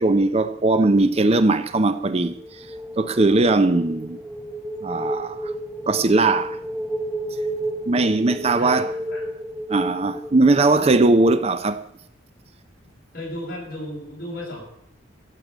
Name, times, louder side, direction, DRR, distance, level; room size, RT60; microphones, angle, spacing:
voice 1, 0.0-4.2 4.8-5.5 5.9-6.6 7.9-8.9 9.7-11.9, right 2 dB, 35° right, 0.6 m, -19 dB
sound 1, 2.3-11.0, right 1 dB, 10° right, 1.1 m, -32 dB
voice 2, 8.4-9.3 13.1-14.6, left 1 dB, 50° left, 7.2 m, -35 dB
14.0 x 7.8 x 8.0 m
head